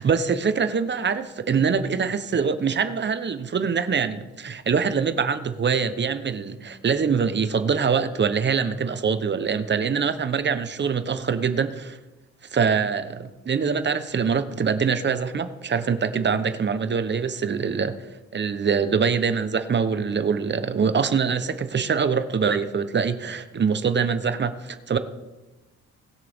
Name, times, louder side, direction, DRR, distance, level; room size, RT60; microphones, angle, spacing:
voice 1, 0.0-12.0 12.5-18.0 18.3-25.0, right 6 dB, 35° right, 11 dB, 0.9 m, -24 dB
20.0 x 6.7 x 3.6 m, 1.1 s
cardioid pair, 90°, 30 cm